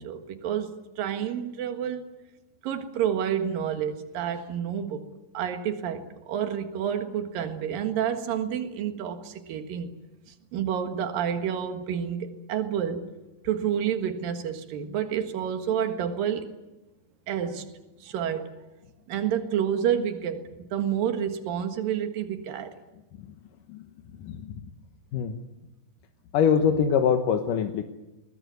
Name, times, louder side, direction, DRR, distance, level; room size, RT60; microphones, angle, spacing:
voice 1, 0.0-2.1 2.6-5.0 5.3-9.9 10.5-13.1 13.4-16.5 17.3-17.7 18.0-18.5 19.1-22.8, right 9 dB, 75° right, 7 dB, 3.3 m, -29 dB
voice 2, 26.3-27.8, left 7 dB, 70° left, 5 dB, 2.6 m, -23 dB
22.5 x 20.0 x 9.4 m, 1.0 s
omnidirectional pair, 4.0 m